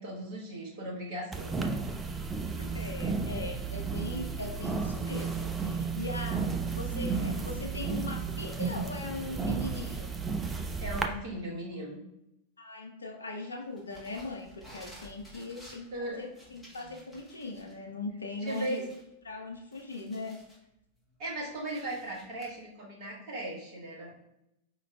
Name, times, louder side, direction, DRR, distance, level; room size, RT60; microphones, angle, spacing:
voice 1, 0.0-1.7 6.3-6.4 10.8-12.0 15.9-16.3 18.4-18.9 21.2-24.1, right 1 dB, 50° right, -3 dB, 1.4 m, -38 dB
sound 1, 1.3-11.1, right 4 dB, 15° right, 0.4 m, -33 dB
voice 2, 2.6-10.1 12.6-18.9 19.2-20.4, left 3 dB, 75° left, 2 dB, 0.6 m, -40 dB
sound 2, 13.8-17.7 18.1-18.2 18.5-20.6 21.1-22.5, equal, 5° left, 1.3 m, -53 dB
4.8 x 3.1 x 2.3 m, 0.83 s
figure-of-eight pair, 90°, 0 cm